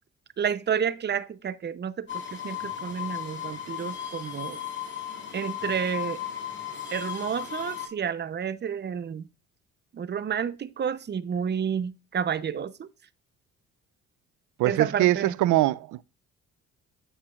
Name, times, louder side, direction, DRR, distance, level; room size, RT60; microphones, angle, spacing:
voice 1, 0.4-4.6 5.3-6.2 6.9-9.3 9.9-12.9 14.6-15.3, right 7 dB, 35° right, 0.6 m, -30 dB
sound 1, 2.1-7.9, left 10 dB, 40° left, 2.4 m, -36 dB
voice 2, 14.6-16.0, right 15 dB, 80° right, 0.5 m, -23 dB
9.9 x 5.0 x 2.3 m
cardioid pair, 90°, 30 cm